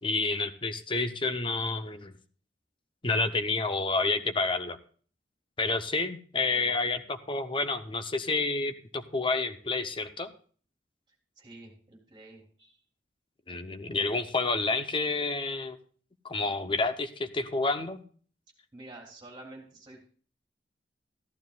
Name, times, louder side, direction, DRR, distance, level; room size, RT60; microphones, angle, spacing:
voice 1, 0.0-2.1 3.0-4.8 5.6-10.3 13.5-15.8 16.2-18.0, left 3 dB, 30° left, 9 dB, 0.8 m, -29 dB
voice 2, 6.3-6.7 11.4-12.8 18.7-20.1, right 2 dB, 25° right, 0 dB, 3.3 m, -49 dB
14.5 x 11.5 x 2.4 m, 0.43 s
head